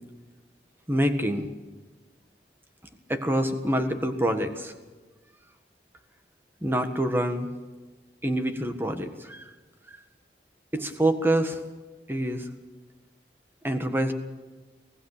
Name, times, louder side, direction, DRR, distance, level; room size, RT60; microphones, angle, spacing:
voice 1, 0.9-1.5 3.1-4.7 6.6-7.5 8.2-9.5 9.9-10.0 10.7-11.6 12.1-12.5 13.6-14.1, right 1 dB, 10° right, 7 dB, 1.6 m, -26 dB
25.0 x 17.5 x 6.7 m, 1.3 s
head